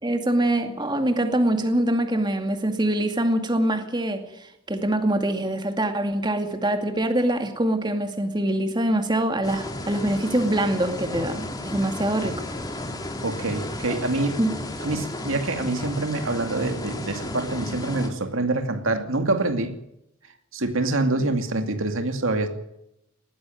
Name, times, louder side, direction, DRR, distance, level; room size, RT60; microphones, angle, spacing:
voice 1, 0.0-12.3 14.4-14.5, right 1 dB, 20° right, 2.3 m, -24 dB
sound 1, 9.4-18.1, left 1 dB, 20° left, 2.8 m, -33 dB
voice 2, 13.2-14.4 14.8-19.8 20.5-22.5, right 2 dB, 80° right, 2.4 m, -26 dB
20.0 x 15.0 x 9.1 m
head